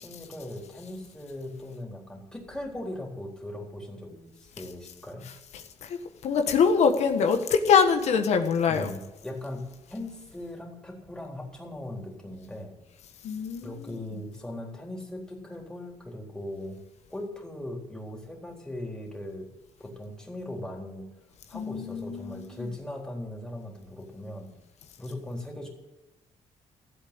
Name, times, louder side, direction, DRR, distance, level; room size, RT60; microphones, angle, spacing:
voice 1, 0.0-5.3 8.7-12.7 13.6-16.8 17.1-19.5 19.8-21.1 21.5-24.5 25.0-25.7, left 1 dB, 5° left, 4.0 m, -39 dB
voice 2, 5.2-8.9 13.2-14.2 21.5-22.7, left 6 dB, 80° left, 1.5 m, -25 dB
15.0 x 8.3 x 8.7 m
cardioid pair, 120°, 11 cm